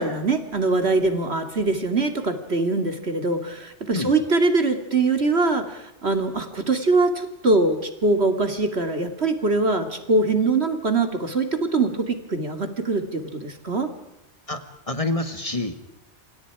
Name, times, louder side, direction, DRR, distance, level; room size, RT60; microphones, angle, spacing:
voice 1, 0.0-13.9, right 3 dB, 60° right, 7 dB, 2.9 m, -23 dB
voice 2, 14.5-15.8, left 2 dB, 30° left, 9 dB, 2.0 m, -27 dB
28.5 x 27.0 x 4.9 m, 0.86 s
omnidirectional pair, 1.2 m